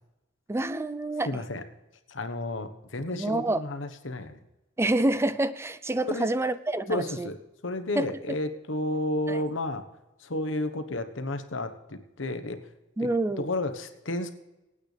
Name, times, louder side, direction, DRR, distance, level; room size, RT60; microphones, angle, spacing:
voice 1, 0.5-1.4 3.1-3.6 4.8-7.3 8.0-8.1 9.3-9.4 13.0-13.5, right 2 dB, 15° right, 14 dB, 0.4 m, -27 dB
voice 2, 1.3-1.6 2.1-4.4 6.1-6.3 6.9-7.4 7.6-9.8 10.2-12.6 13.0-13.1 13.4-14.3, left 1 dB, 75° left, 8 dB, 1.2 m, -32 dB
23.5 x 9.0 x 3.4 m, 1.0 s
head